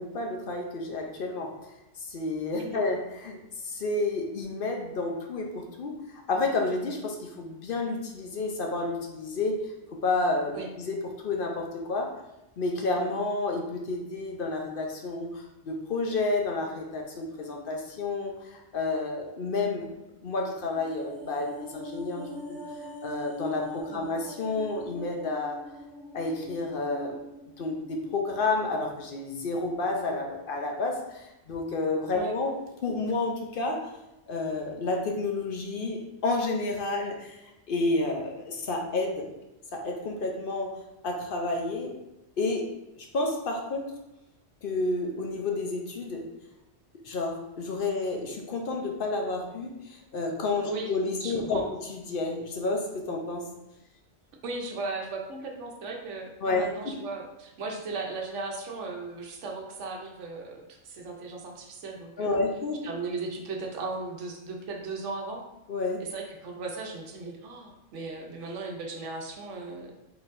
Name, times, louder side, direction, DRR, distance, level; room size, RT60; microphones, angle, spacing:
voice 1, 0.0-1.5 2.0-3.4 3.6-6.0 6.3-12.1 12.6-19.9 20.2-22.6 23.0-25.6 26.1-27.2 27.6-32.5 32.8-33.9 34.3-37.4 37.7-39.3 39.7-40.8 41.0-42.0 42.4-42.7 43.1-43.9 44.6-46.3 47.0-51.6 51.9-53.5 56.4-56.9 62.2-62.9 65.7-66.0, left 3 dB, 55° left, 1 dB, 0.8 m, -30 dB
sound 1, 20.6-29.0 29.3-29.5, left 1 dB, 5° right, 0.6 m, -43 dB
voice 2, 51.2-51.7 54.4-62.4 62.8-65.4 66.0-69.9, right 3 dB, 85° right, 1 dB, 1.1 m, -36 dB
4.4 x 3.9 x 2.5 m, 0.97 s
omnidirectional pair, 1.2 m